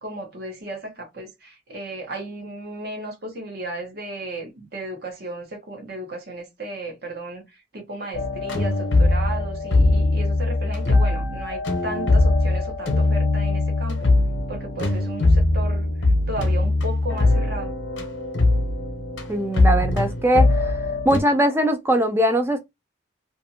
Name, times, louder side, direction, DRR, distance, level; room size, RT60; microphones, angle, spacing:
voice 1, 0.0-14.1 14.5-15.9 16.3-17.7, right 1 dB, 55° right, 1.0 m, -34 dB
sound 1, 8.1-21.2, left 2 dB, 75° left, 0.8 m, -21 dB
voice 2, 19.3-20.8 21.0-22.6, right 1 dB, 10° right, 0.4 m, -21 dB
2.6 x 2.5 x 2.6 m
head